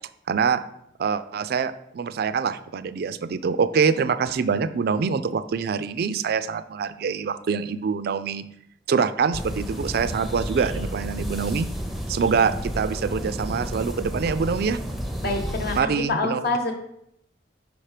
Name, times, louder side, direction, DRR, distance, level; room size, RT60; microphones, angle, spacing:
voice 1, 0.3-0.6 1.0-8.5 8.9-11.7 12.1-14.8 15.7-16.4, right 5 dB, 60° right, 13 dB, 0.4 m, -25 dB
sound 1, 9.3-15.8, equal, ahead, 0.6 m, -31 dB
voice 2, 15.2-16.7, left 2 dB, 60° left, 4 dB, 1.1 m, -26 dB
5.4 x 4.4 x 4.9 m, 0.76 s
head